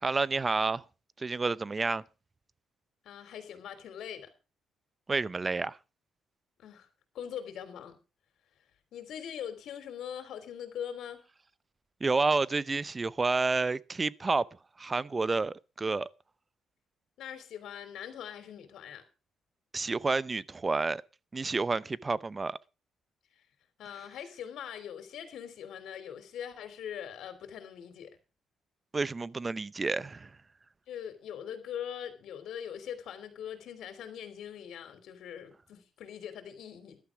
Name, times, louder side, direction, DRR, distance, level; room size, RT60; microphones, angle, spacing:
voice 1, 0.0-0.8 1.2-2.0 5.1-5.8 12.0-16.1 19.7-21.0 21.3-22.6 28.9-30.4, right 3 dB, 25° right, 0.6 m, -30 dB
voice 2, 3.0-4.3 6.6-6.9 7.1-7.9 8.9-11.2 17.2-19.0 23.8-28.1 30.9-37.0, left 9 dB, 75° left, 3.4 m, -42 dB
14.0 x 12.0 x 4.9 m
cardioid pair, 90°, 0 cm